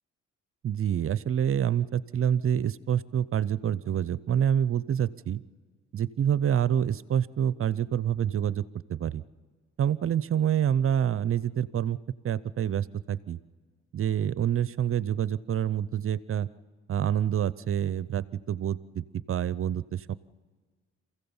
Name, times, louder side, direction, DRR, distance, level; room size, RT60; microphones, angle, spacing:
voice 1, 0.6-5.4 5.9-8.6 8.9-9.2 9.8-12.0 12.2-13.4 13.9-16.5 16.9-20.2, right 9 dB, 45° right, 19 dB, 0.7 m, -27 dB
27.5 x 15.5 x 7.1 m, 1.5 s
cardioid pair, 90°, 30 cm